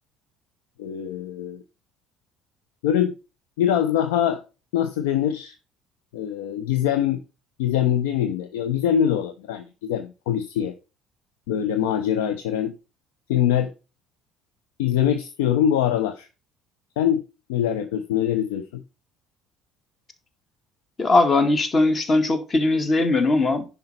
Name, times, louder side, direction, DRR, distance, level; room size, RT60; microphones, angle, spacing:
voice 1, 0.8-1.6 2.8-3.2 3.6-4.4 4.7-5.5 6.1-7.2 7.6-10.7 11.5-12.7 13.3-13.7 14.8-16.3 17.0-17.2 17.5-18.7, left 10 dB, 75° left, 0.8 m, -23 dB
voice 2, 21.0-23.7, left 2 dB, 35° left, 2.2 m, -20 dB
10.5 x 5.4 x 4.3 m
hypercardioid pair, 60°, 0 cm